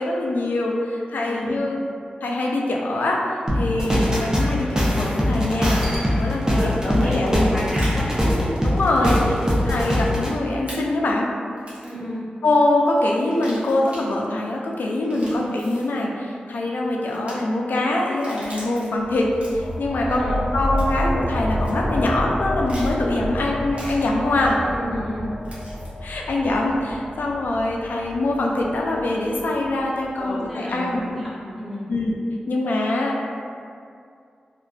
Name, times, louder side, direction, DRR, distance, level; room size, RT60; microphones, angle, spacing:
voice 1, 0.0-1.8 2.2-3.2 3.5-5.8 6.2-7.6 8.6-9.2 9.6-11.3 12.4-24.6 26.0-31.0 31.9-32.2 32.5-33.3, left 2 dB, 80° left, -1 dB, 0.3 m, -23 dB
voice 2, 1.3-1.7 6.5-8.4 9.1-9.5 11.8-12.2 15.2-15.5 20.0-20.4 24.6-25.2 30.2-31.9, equal, ahead, -11 dB, 1.0 m, -32 dB
sound 1, 3.5-10.3, left 1 dB, 20° right, 0.6 m, -21 dB
sound 2, 7.3-7.9 9.1-9.2 9.5-9.6 10.7-10.8 11.6-12.0 13.2-14.0 14.9-15.9 17.1-17.3 18.0-18.8 19.3-19.8 20.8-21.1 21.6-21.7 22.7-22.9 23.7-23.9 25.4-25.9, equal, 45° right, 0.9 m, -41 dB
sound 3, 19.0-30.2, equal, 35° left, 0.9 m, -29 dB
2.4 x 2.3 x 2.2 m, 2.3 s
cardioid pair, 40°, 3 cm